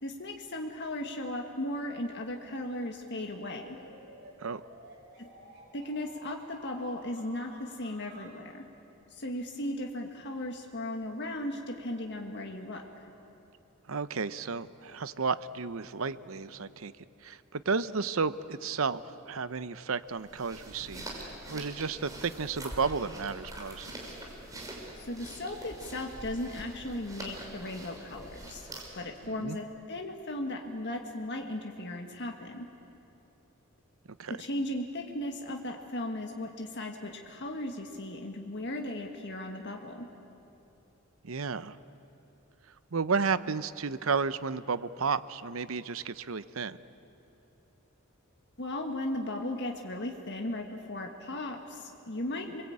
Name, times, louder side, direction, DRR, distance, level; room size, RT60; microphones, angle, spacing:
voice 1, 0.0-3.7 5.2-5.3 5.7-8.6 9.1-12.8 24.9-28.7 28.9-32.7 34.4-40.1 48.6-52.6, left 1 dB, 55° left, 2 dB, 1.8 m, -36 dB
sound 1, 3.4-8.4, right 1 dB, 55° right, 7.2 m, -53 dB
voice 2, 13.9-16.9 17.2-23.9 29.2-29.6 34.2-34.4 41.2-41.8 42.9-46.8, right 5 dB, 75° right, 14 dB, 0.8 m, -32 dB
sound 2, 20.1-29.1, right 1 dB, 15° right, 5.0 m, -44 dB
28.5 x 22.0 x 8.7 m, 3.0 s
head